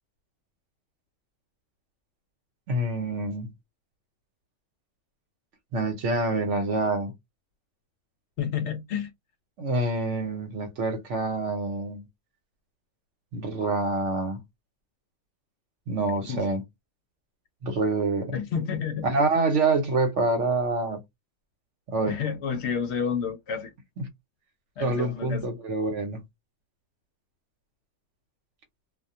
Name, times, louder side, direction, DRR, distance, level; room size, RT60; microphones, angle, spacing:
voice 1, 2.7-3.5 5.7-7.1 9.6-12.1 13.3-14.4 15.9-16.6 17.6-18.4 19.0-21.0 21.9-22.1 24.0-24.1 24.8-26.2, right 3 dB, 70° right, 1.1 m, -26 dB
voice 2, 8.4-9.1 16.3-16.4 18.3-19.1 22.1-23.7 24.8-25.5, left 7 dB, 65° left, 0.9 m, -30 dB
2.3 x 2.2 x 2.6 m
omnidirectional pair, 1.3 m